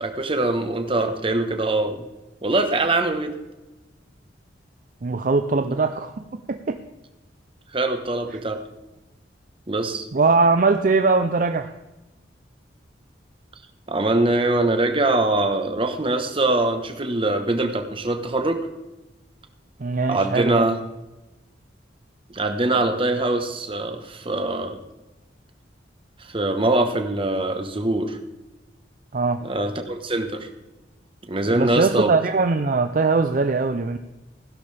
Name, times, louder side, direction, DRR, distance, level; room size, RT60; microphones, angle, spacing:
voice 1, 0.0-2.0 2.4-3.3 5.6-5.7 7.7-8.6 9.7-10.1 13.9-18.6 20.1-20.8 22.3-24.8 26.2-28.2 29.4-30.5 31.3-32.1, right 2 dB, 30° right, 6 dB, 1.2 m, -23 dB
voice 2, 5.0-6.8 10.1-11.7 19.8-20.7 29.1-29.4 31.5-34.0, right 4 dB, 45° right, 8 dB, 0.5 m, -21 dB
16.0 x 11.0 x 3.4 m, 1.0 s
head